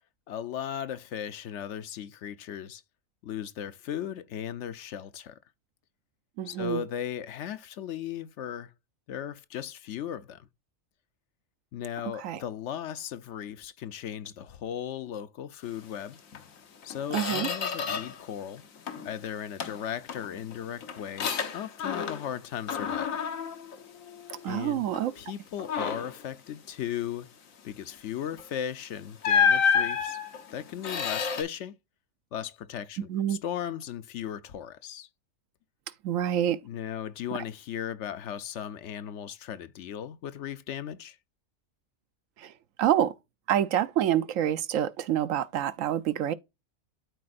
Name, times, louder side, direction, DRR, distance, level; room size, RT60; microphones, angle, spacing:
voice 1, 0.3-2.8 3.2-5.3 6.4-8.7 9.1-10.5 11.7-16.2 16.8-18.6 19.0-23.1 24.5-24.9 25.2-27.3 27.6-30.2 30.5-31.8 32.3-35.1 36.6-41.2, left 9 dB, 70° left, 0.9 m, -37 dB
voice 2, 6.4-6.8 12.2-12.4 17.1-17.5 24.4-25.1 33.1-33.4 36.0-36.6 42.4-42.5 42.8-43.1 43.5-46.3, right 11 dB, 80° right, 1.0 m, -27 dB
Squeak, 16.3-16.5 16.8-18.3 18.6-19.2 19.6-22.4 22.7-24.5 24.9-25.2 25.6-26.2 28.3-28.5 29.2-31.4, left 6 dB, 85° left, 1.4 m, -29 dB
12.5 x 4.2 x 2.5 m
omnidirectional pair, 1.4 m